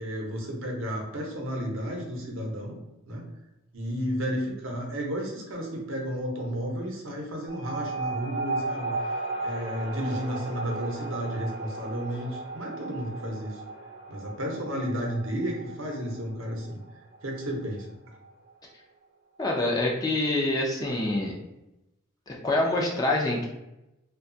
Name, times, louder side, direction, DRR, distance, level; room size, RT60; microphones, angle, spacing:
voice 1, 0.0-2.8 3.1-3.3 3.7-9.2 9.4-13.6 14.1-16.8 17.2-17.9, equal, 65° right, 0 dB, 0.7 m, -32 dB
sound 1, 7.5-18.4, right 3 dB, 30° right, 0.6 m, -35 dB
voice 2, 19.4-21.3 22.3-23.5, left 2 dB, 20° left, -2 dB, 0.3 m, -26 dB
2.8 x 2.2 x 2.6 m, 0.93 s
head